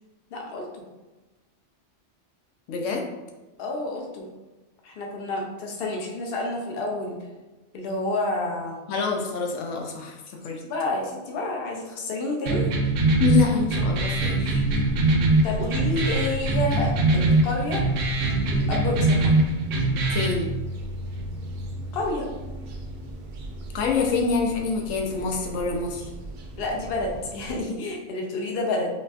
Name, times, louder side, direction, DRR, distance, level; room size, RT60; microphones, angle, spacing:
voice 1, 0.3-0.7 3.6-4.3 4.8-7.2 7.7-8.8 10.6-12.7 15.4-17.8 18.5-19.3 21.9-22.3 26.6-28.9, left 2 dB, 60° left, 0 dB, 0.8 m, -29 dB
voice 2, 2.7-3.0 8.9-10.2 10.4-10.6 13.2-14.6 20.1-20.5 23.7-26.0, left 5 dB, 90° left, 1 dB, 0.9 m, -26 dB
sound 1, 12.4-20.4, right 2 dB, 90° right, 1.0 m, -22 dB
sound 2, 12.8-27.6, left 1 dB, 60° right, 0.7 m, -36 dB
4.0 x 2.6 x 2.4 m, 1.2 s
omnidirectional pair, 1.3 m